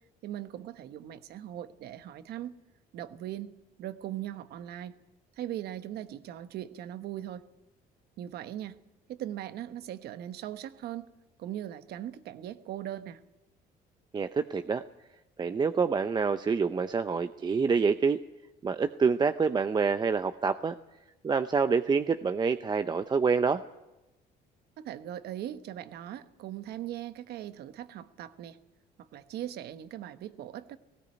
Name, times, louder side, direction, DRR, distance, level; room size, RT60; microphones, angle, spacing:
voice 1, 0.2-2.6 2.9-3.5 3.8-4.9 5.4-7.4 8.2-8.8 9.1-11.1 11.4-13.2 24.8-28.6 29.0-30.8, right 12 dB, 70° right, 11 dB, 1.2 m, -39 dB
voice 2, 14.1-14.8 15.4-18.2 18.6-20.8 21.2-23.6, right 5 dB, 25° right, 10 dB, 0.6 m, -27 dB
18.5 x 16.5 x 8.8 m, 1.0 s
cardioid pair, 110°, 17 cm